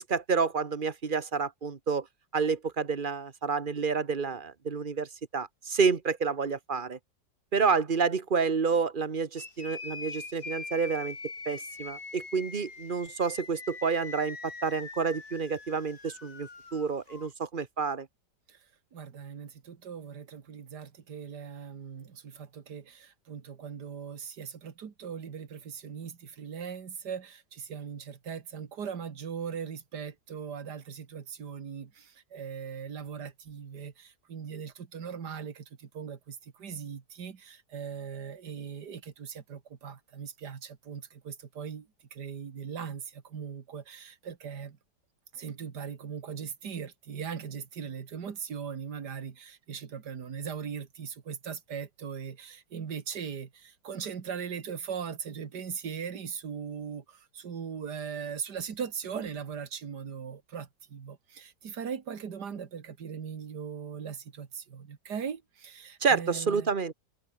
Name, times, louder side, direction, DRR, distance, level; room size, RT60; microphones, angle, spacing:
voice 1, 0.0-2.1 2.3-7.0 7.5-11.2 11.4-18.1 66.0-66.9, right 5 dB, 30° right, 1.3 m, -29 dB
sound 1, 9.3-17.3, left 4 dB, 60° left, 3.8 m, -43 dB
voice 2, 18.9-44.8 45.3-66.7, right 7 dB, 65° right, 2.4 m, -39 dB
omnidirectional pair, 1.9 m